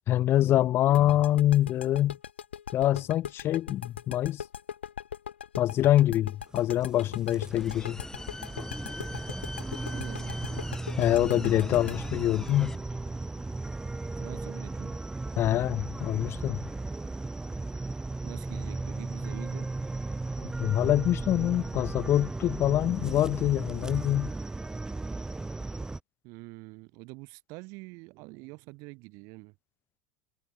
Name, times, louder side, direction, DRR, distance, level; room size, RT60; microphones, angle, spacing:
voice 1, 0.1-2.2 2.7-4.4 5.6-8.0 11.0-12.7 15.4-16.6 20.4-24.3, left 13 dB, 40° left, 0.4 m, -25 dB
sound 1, 0.9-13.7, left 8 dB, 85° left, 2.2 m, -40 dB
sound 2, 6.5-26.0, right 2 dB, 10° right, 0.9 m, -36 dB
sound 3, 7.5-12.8, left 2 dB, 10° left, 1.2 m, -43 dB
voice 2, 9.9-10.4 14.2-15.0 18.2-19.7 26.2-29.5, right 27 dB, 60° right, 6.9 m, -45 dB
hypercardioid pair, 80°, 6 cm